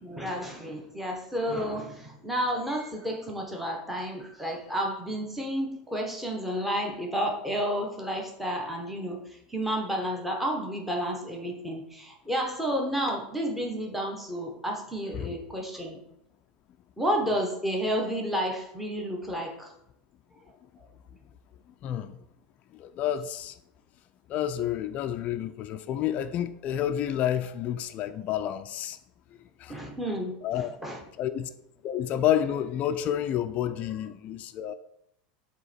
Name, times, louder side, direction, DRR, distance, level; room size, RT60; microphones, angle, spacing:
voice 1, 0.0-9.2 9.5-16.0 17.0-19.7 29.7-31.0, equal, 5° right, 1.0 m, -31 dB
voice 2, 21.8-22.2 22.7-23.5 24.3-29.0 29.6-29.8 30.4-30.8 31.2-31.5 31.8-34.7, left 10 dB, 35° left, 0.3 m, -29 dB
7.7 x 2.9 x 4.2 m
supercardioid pair, 150°, 5 cm